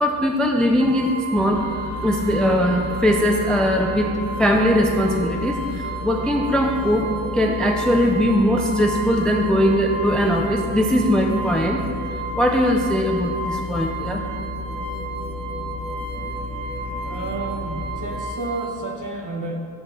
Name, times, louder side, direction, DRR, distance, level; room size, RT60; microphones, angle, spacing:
voice 1, 0.0-1.6 2.0-4.1 4.4-11.8 12.4-14.2, equal, ahead, 1 dB, 0.5 m, -20 dB
sound 1, 0.8-18.8, right 2 dB, 80° right, 0.9 m, -33 dB
sound 2, 1.3-18.2, left 2 dB, 20° right, 1.5 m, -33 dB
voice 2, 17.0-19.5, right 2 dB, 45° right, 0 dB, 1.4 m, -31 dB
6.1 x 5.4 x 6.9 m, 2.3 s
cardioid pair, 100°, 44 cm